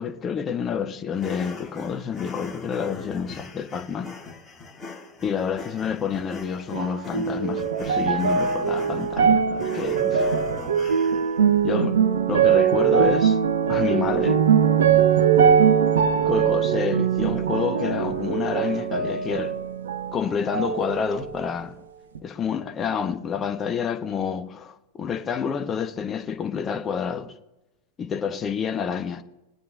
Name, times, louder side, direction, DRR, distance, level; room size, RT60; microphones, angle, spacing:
voice 1, 0.0-4.1 5.2-10.3 11.6-13.4 13.7-14.5 16.2-19.6 20.1-21.8 22.2-27.3 28.0-29.2, left 7 dB, 25° left, 1.1 m, -28 dB
sound 1, 1.1-11.4, left 3 dB, 10° left, 3.9 m, -40 dB
sound 2, 6.7-20.2 20.5-21.5 22.1-22.2, right 7 dB, 65° right, 0.8 m, -21 dB
22.0 x 9.2 x 2.7 m
figure-of-eight pair, 90°, 0 cm